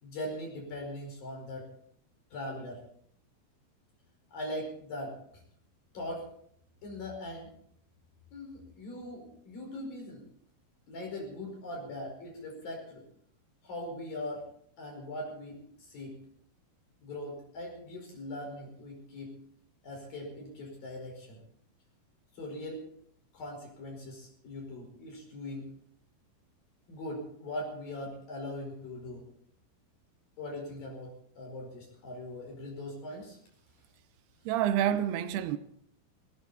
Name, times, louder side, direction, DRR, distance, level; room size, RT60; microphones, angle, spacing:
voice 1, 0.0-1.7 2.3-2.8 4.3-5.2 5.9-6.3 6.8-7.5 8.3-10.2 10.9-13.0 13.6-14.5 14.8-16.2 17.0-19.3 19.8-21.4 22.3-22.8 23.3-25.7 26.9-29.2 30.4-33.4, left 1 dB, 65° left, 6.8 m, -40 dB
voice 2, 34.5-35.6, right 11 dB, 90° right, 2.9 m, -28 dB
18.5 x 17.5 x 4.2 m
omnidirectional pair, 4.5 m